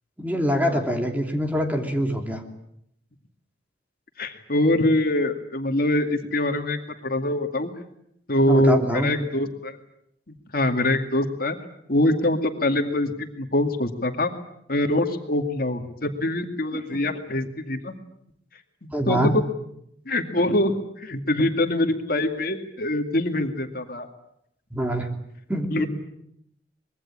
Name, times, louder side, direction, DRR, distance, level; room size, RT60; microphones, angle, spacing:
voice 1, 0.2-2.4 8.5-9.1 18.9-19.3 24.7-25.1 25.5-25.9, equal, 10° right, 3 dB, 3.0 m, -24 dB
voice 2, 4.2-7.7 8.3-9.8 10.5-11.6 11.9-14.3 14.7-18.0 18.8-19.2 20.1-24.1 25.7-25.9, left 1 dB, 55° left, 5 dB, 2.3 m, -24 dB
25.0 x 22.0 x 8.7 m, 0.74 s
head